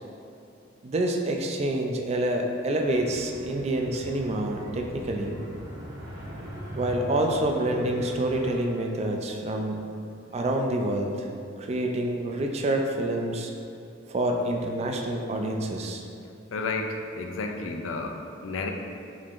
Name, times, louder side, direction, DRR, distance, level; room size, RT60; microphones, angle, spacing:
voice 1, 0.8-5.4 6.7-9.9 10.3-11.2 11.6-13.5 14.1-16.0, right 1 dB, 35° right, 2 dB, 0.3 m, -27 dB
sound 1, 2.8-8.6, equal, 70° right, 0.9 m, -40 dB
voice 2, 16.5-18.7, left 3 dB, 90° left, 4 dB, 0.4 m, -32 dB
4.7 x 3.7 x 2.5 m, 2.5 s
head